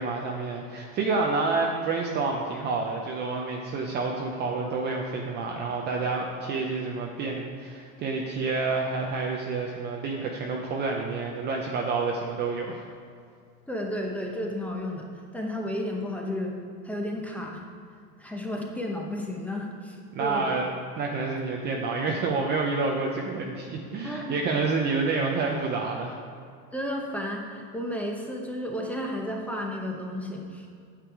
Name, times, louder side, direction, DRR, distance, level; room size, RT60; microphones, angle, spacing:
voice 1, 0.0-12.8 20.1-20.6 21.0-26.2, right 4 dB, 20° right, 0 dB, 0.6 m, -28 dB
voice 2, 13.7-16.6 16.8-17.6 18.2-20.5 24.0-24.4 24.8-24.9 26.7-30.7, left 1 dB, 5° left, 0 dB, 0.8 m, -32 dB
9.2 x 8.3 x 4.7 m, 2.3 s
supercardioid pair, 145°, 47 cm